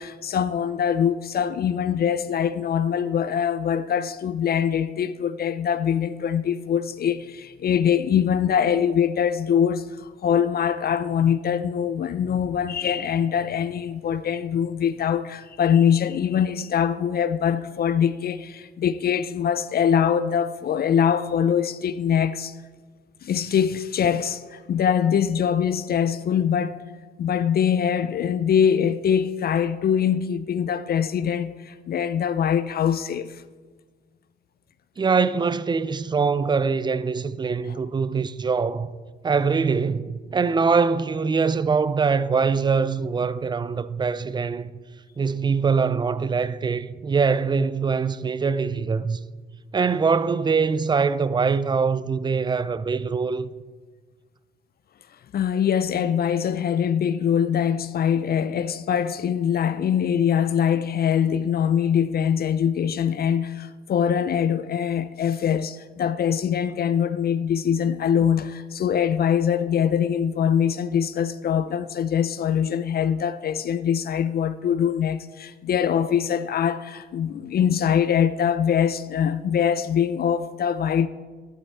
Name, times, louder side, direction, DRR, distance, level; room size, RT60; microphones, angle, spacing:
voice 1, 0.0-22.6 23.2-26.8 27.2-33.4 55.3-81.1, left 8 dB, 50° left, 0.5 m, -23 dB
voice 2, 35.0-38.9 39.2-44.7 45.2-49.2 49.7-53.5, right 5 dB, 20° right, 0.5 m, -23 dB
12.0 x 11.5 x 4.2 m
cardioid pair, 90°, 20 cm